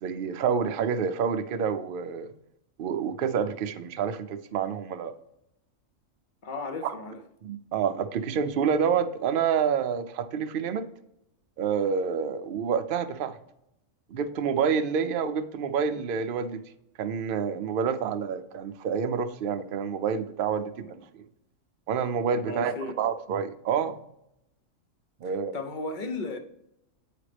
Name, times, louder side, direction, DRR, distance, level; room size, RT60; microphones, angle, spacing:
voice 1, 0.0-2.3 2.8-5.1 6.8-6.9 7.4-10.9 11.6-13.4 14.1-16.6 17.0-21.0 21.9-24.0 25.2-25.6, right 7 dB, 60° right, 0.6 m, -28 dB
voice 2, 6.4-7.2 22.4-23.0 25.2-26.4, left 3 dB, 45° left, 0.8 m, -35 dB
8.4 x 5.0 x 3.3 m
omnidirectional pair, 1.4 m